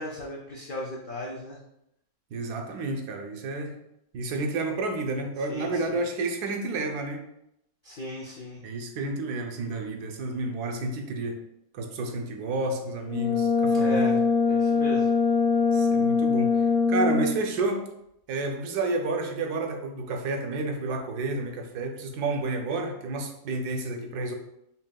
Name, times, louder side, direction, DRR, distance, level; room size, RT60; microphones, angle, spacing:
voice 1, 0.0-1.6 5.5-5.7 7.8-8.6 13.7-14.2 14.5-15.1, left 1 dB, 85° left, -3 dB, 0.4 m, -35 dB
voice 2, 2.3-3.7 4.1-7.2 8.6-11.4 11.7-14.2 15.7-17.8 18.3-24.3, right 3 dB, 90° right, 4 dB, 1.2 m, -30 dB
Brass instrument, 13.0-17.4, left 5 dB, 60° left, 1.9 m, -23 dB
5.6 x 2.7 x 2.2 m, 0.79 s
omnidirectional pair, 1.6 m